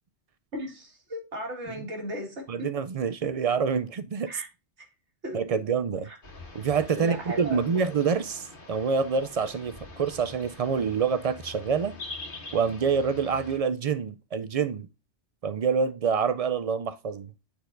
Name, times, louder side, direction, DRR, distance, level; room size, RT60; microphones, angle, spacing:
voice 1, 0.5-2.7 4.3-4.5 5.2-5.6 7.0-7.7, equal, 85° right, 2.3 m, -36 dB
voice 2, 2.5-4.4 5.3-6.1 6.5-11.9 12.5-14.9 15.4-17.3, right 6 dB, 55° right, 0.4 m, -27 dB
sound 1, 6.2-13.6, left 2 dB, 50° left, 1.6 m, -44 dB
9.3 x 4.3 x 2.5 m
omnidirectional pair, 1.1 m